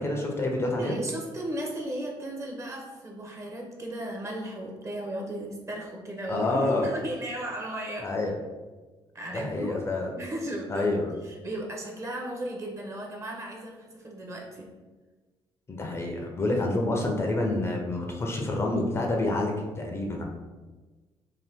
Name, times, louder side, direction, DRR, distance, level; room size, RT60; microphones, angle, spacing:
voice 1, 0.0-1.0 6.3-6.9 8.0-8.4 9.3-10.1 10.7-11.1 15.7-20.2, left 2 dB, 25° left, 1 dB, 0.4 m, -28 dB
voice 2, 0.8-8.1 9.1-9.8 10.1-11.0 11.2-14.7, right 1 dB, 30° right, 0 dB, 0.6 m, -35 dB
2.7 x 2.1 x 3.4 m, 1.3 s
cardioid pair, 110°, 10 cm